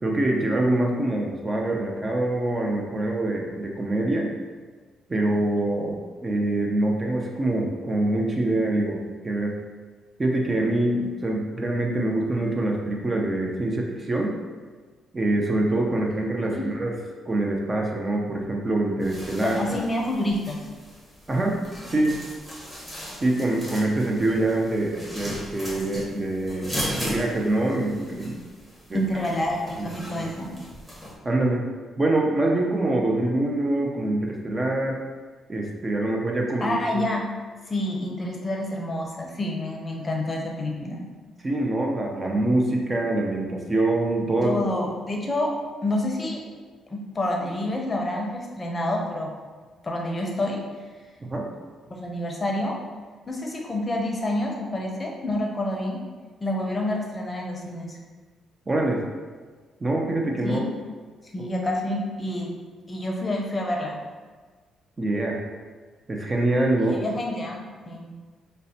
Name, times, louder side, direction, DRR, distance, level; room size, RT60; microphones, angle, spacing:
voice 1, 0.0-4.3 5.1-9.5 10.2-14.3 15.1-16.9 17.3-19.7 21.3-21.6 21.9-22.2 23.2-28.4 28.9-29.0 29.8-30.2 31.2-31.6 32.0-35.0 35.5-37.1 41.4-44.6 51.2-51.5 58.7-59.0 59.8-60.7 65.0-65.4 66.1-67.0, right 2 dB, 25° right, 0 dB, 0.5 m, -25 dB
sound 1, 19.0-31.1, equal, 5° right, 0.9 m, -37 dB
voice 2, 19.4-20.6 28.9-30.5 36.6-37.2 37.7-41.0 44.4-45.5 45.8-46.4 46.9-49.3 49.8-50.6 51.9-52.7 53.3-56.0 56.4-58.0 60.4-60.6 61.3-62.5 62.9-64.0 66.8-68.1, left 1 dB, 25° left, 0 dB, 0.6 m, -28 dB
5.1 x 2.1 x 2.7 m, 1.5 s
cardioid pair, 90°, 0 cm